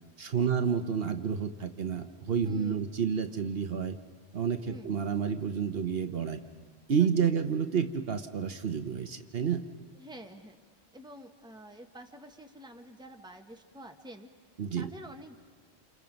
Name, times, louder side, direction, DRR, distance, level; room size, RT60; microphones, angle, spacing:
voice 1, 0.2-4.0 4.3-6.4 6.9-9.6 14.6-14.9, right 7 dB, 60° right, 8 dB, 1.1 m, -30 dB
voice 2, 2.4-2.9 4.6-4.9 7.0-7.1 9.9-10.6 10.9-14.3 14.8-15.4, equal, 5° right, 4 dB, 1.3 m, -48 dB
29.0 x 28.5 x 5.3 m, 1.5 s
omnidirectional pair, 1.1 m